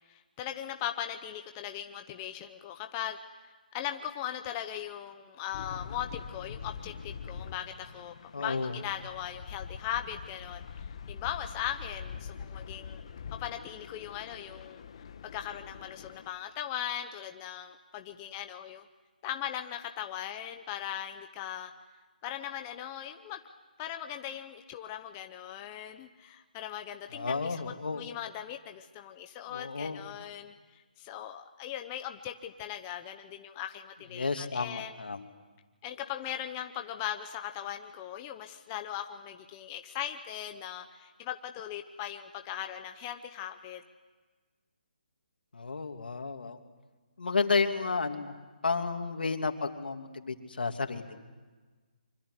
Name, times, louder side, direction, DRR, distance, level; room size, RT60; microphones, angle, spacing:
voice 1, 0.1-13.0 13.4-14.8 15.3-18.8 19.2-21.7 22.2-23.4 23.8-34.9 35.8-43.8, left 11 dB, 15° left, 6 dB, 0.7 m, -39 dB
sound 1, 5.5-16.3, left 6 dB, 35° left, 1.3 m, -44 dB
voice 2, 8.3-8.8 27.1-28.0 29.5-30.0 34.1-35.3 45.5-46.6 47.2-48.3 48.6-51.2, left 4 dB, 80° left, 6 dB, 2.7 m, -32 dB
25.5 x 25.0 x 8.1 m, 1.3 s
hypercardioid pair, 170°, 5 cm